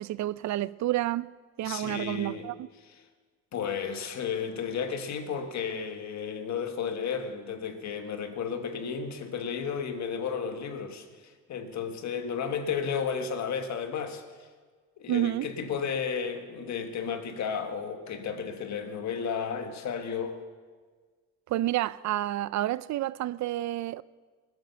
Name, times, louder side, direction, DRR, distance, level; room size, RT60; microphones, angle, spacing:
voice 1, 0.0-1.3 1.6-2.7 15.1-15.5 21.5-24.0, right 14 dB, 70° right, 0.5 m, -29 dB
voice 2, 1.6-2.5 2.8-3.0 3.5-14.2 15.0-20.4, left 6 dB, 65° left, 1.7 m, -33 dB
20.0 x 8.7 x 6.9 m
cardioid pair, 90°, 30 cm